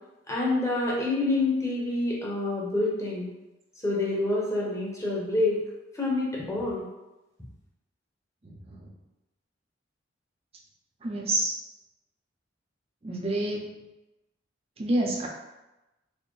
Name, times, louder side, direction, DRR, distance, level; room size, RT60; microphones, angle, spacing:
voice 1, 0.3-3.3 3.8-5.6 5.9-6.8, left 2 dB, 15° left, -5 dB, 0.8 m, -27 dB
voice 2, 8.4-8.9 11.0-11.5 13.0-13.7 14.8-15.3, right 1 dB, 30° right, -1 dB, 0.5 m, -28 dB
4.2 x 2.1 x 3.1 m, 0.99 s
head